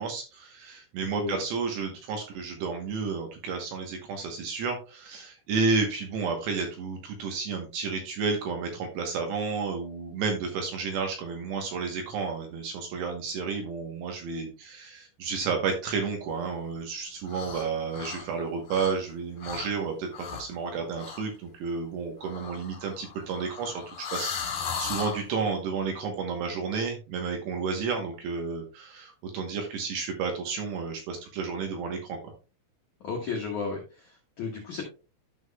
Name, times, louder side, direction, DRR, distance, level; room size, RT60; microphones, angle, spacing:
voice 1, 0.0-24.3 24.8-32.3, right 5 dB, 70° right, 3 dB, 2.8 m, -31 dB
sound 1, 17.3-17.7 17.9-19.1 19.4-19.7 20.1-20.5 21.0-21.2 22.2-25.2, left 7 dB, 65° left, 2.4 m, -36 dB
voice 2, 33.0-34.8, left 5 dB, 90° left, -1 dB, 1.7 m, -33 dB
13.0 x 5.7 x 2.3 m, 0.33 s
omnidirectional pair, 5.9 m